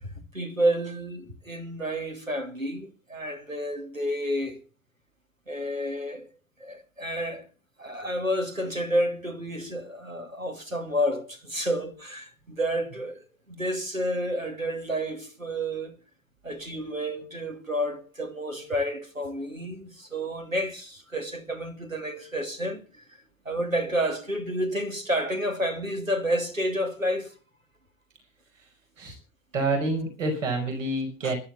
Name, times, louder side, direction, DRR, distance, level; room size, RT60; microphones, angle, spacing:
voice 1, 0.0-4.6 5.5-6.3 6.6-7.5 7.8-16.0 16.4-23.0 23.4-27.4 31.2-31.3, equal, 90° right, 2.6 m, -30 dB
voice 2, 29.5-31.3, right 2 dB, 70° right, 5.2 m, -27 dB
15.0 x 12.0 x 7.1 m
figure-of-eight pair, 75°, 39 cm